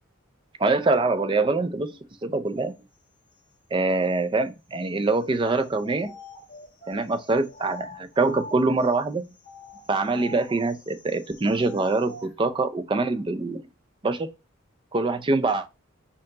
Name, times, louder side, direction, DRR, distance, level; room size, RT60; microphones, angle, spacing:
voice 1, 0.6-2.7 3.7-6.1 6.9-9.3 9.9-13.6 14.0-14.3 14.9-15.7, right 3 dB, 25° right, 0.4 m, -24 dB
sound 1, 5.5-8.9 9.4-12.3, left 2 dB, 40° left, 1.5 m, -45 dB
4.4 x 2.9 x 3.7 m
head